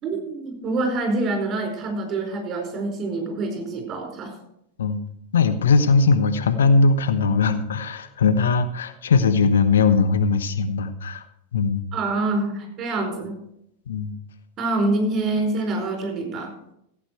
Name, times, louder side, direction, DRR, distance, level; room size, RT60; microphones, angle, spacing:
voice 1, 0.0-4.3 11.9-13.4 14.6-16.5, right 2 dB, 30° right, 2 dB, 4.5 m, -26 dB
voice 2, 5.3-11.2 11.5-11.8 13.9-14.1, left 4 dB, 65° left, 9 dB, 1.0 m, -20 dB
15.5 x 8.5 x 4.6 m, 0.75 s
figure-of-eight pair, 90°, 0 cm